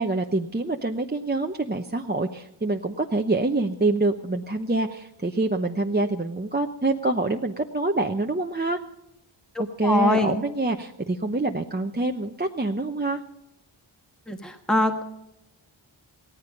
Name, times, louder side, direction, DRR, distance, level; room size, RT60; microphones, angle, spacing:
voice 1, 0.0-8.8 9.6-13.2, right 2 dB, 20° right, 3 dB, 0.9 m, -26 dB
voice 2, 9.5-10.4 14.3-15.0, left 1 dB, ahead, 5 dB, 1.5 m, -23 dB
17.5 x 14.5 x 5.3 m, 0.85 s
wide cardioid pair, 45°, 49 cm